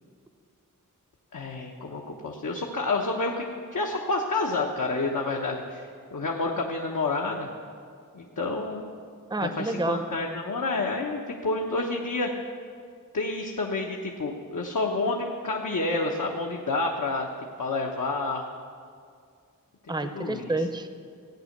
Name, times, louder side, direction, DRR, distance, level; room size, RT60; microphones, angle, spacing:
voice 1, 1.3-3.4 3.7-7.5 8.1-8.9 9.4-12.3 13.1-17.3 17.6-18.5 20.1-20.5, left 3 dB, 65° left, 0 dB, 1.1 m, -29 dB
voice 2, 9.3-10.0 19.9-20.9, right 2 dB, 15° right, 9 dB, 0.8 m, -29 dB
14.5 x 9.0 x 6.6 m, 2.2 s
wide cardioid pair, 65°, 34 cm